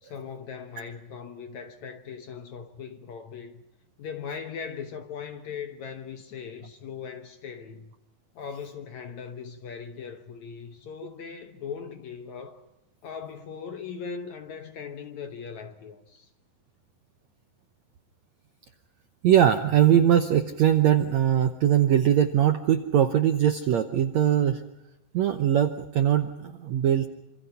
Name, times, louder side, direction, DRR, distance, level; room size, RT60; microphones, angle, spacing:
voice 1, 0.0-3.6 4.0-7.9 8.4-12.7 13.0-16.3, left 6 dB, 65° left, 2.0 m, -39 dB
voice 2, 19.2-24.6 25.1-27.1, right 10 dB, 75° right, 1.6 m, -21 dB
27.0 x 26.5 x 5.7 m
omnidirectional pair, 4.4 m